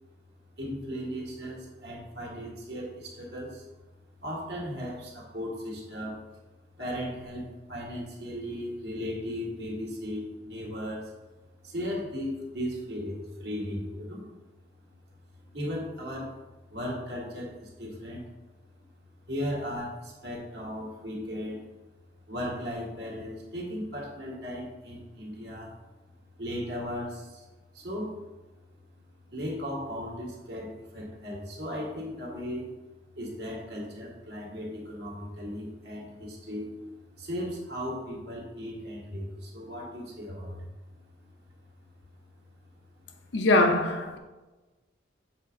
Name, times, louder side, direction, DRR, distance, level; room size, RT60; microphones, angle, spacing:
voice 1, 0.6-3.6 4.2-6.2 6.8-11.1 11.6-14.3 15.5-16.4 16.7-18.2 19.3-21.6 22.3-25.8 26.4-27.4 27.7-28.2 29.3-32.7 33.2-36.7 37.2-40.7, equal, 60° right, 1.8 m, -36 dB
voice 2, 43.3-44.2, left 2 dB, 75° left, 0.8 m, -22 dB
7.3 x 3.6 x 5.1 m
head